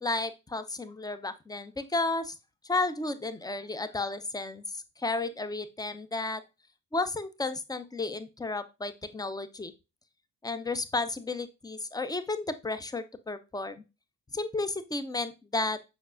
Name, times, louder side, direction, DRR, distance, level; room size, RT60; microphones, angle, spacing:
voice 1, 0.0-2.3 2.6-6.4 6.9-9.7 10.4-13.8 14.3-15.8, left 3 dB, 10° left, 12 dB, 0.7 m, -33 dB
7.9 x 5.4 x 2.5 m, 0.27 s
figure-of-eight pair, 45°, 44 cm